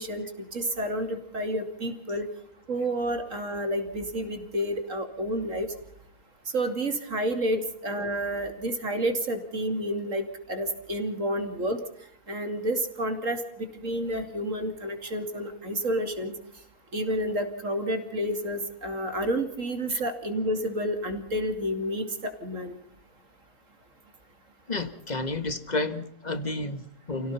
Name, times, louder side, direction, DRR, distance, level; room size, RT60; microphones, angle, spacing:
voice 1, 0.0-2.2 2.7-5.7 6.5-11.8 12.3-16.3 16.9-22.7, right 1 dB, 65° right, 7 dB, 3.1 m, -30 dB
voice 2, 24.7-27.3, left 2 dB, 30° left, 10 dB, 1.8 m, -31 dB
29.5 x 17.0 x 5.6 m, 0.68 s
omnidirectional pair, 1.5 m